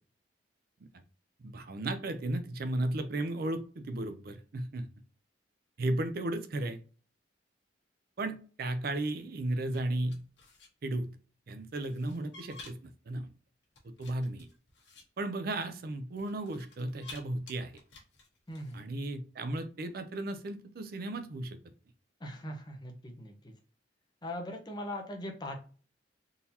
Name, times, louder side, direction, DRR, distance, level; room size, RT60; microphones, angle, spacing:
voice 1, 1.4-4.9 5.8-6.8 8.2-10.2 10.8-11.2 11.5-13.3 14.0-14.5 15.2-17.7 18.7-21.6, right 1 dB, 50° right, 9 dB, 0.4 m, -34 dB
sound 1, 9.6-10.7 11.7-12.9 13.6-15.0 16.2-17.2 17.5-19.1, left 3 dB, 65° left, 1.2 m, -52 dB
voice 2, 18.5-18.9 22.2-23.5 24.2-25.6, left 1 dB, 25° left, 2 dB, 0.7 m, -40 dB
3.8 x 2.7 x 2.8 m, 0.39 s
head